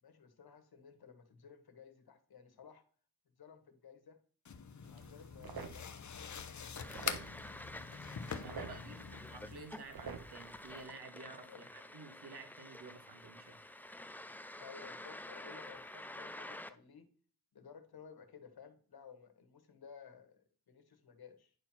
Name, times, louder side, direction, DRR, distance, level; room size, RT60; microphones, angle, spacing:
voice 1, 0.0-2.8 3.4-4.2 4.8-6.8 8.6-9.2 11.5-11.6 14.6-17.1 17.5-21.5, left 6 dB, 75° left, 8 dB, 1.6 m, -56 dB
sound 1, 4.5-9.6, left 6 dB, 50° left, 0.8 m, -44 dB
sound 2, 4.8-10.8, right 5 dB, 70° right, 1.3 m, -50 dB
sound 3, 6.8-16.7, left 1 dB, 5° left, 0.4 m, -50 dB
voice 2, 8.4-13.6, right 4 dB, 90° right, 6 dB, 1.9 m, -52 dB
10.0 x 4.5 x 5.8 m, 0.43 s
wide cardioid pair, 175°, 37 cm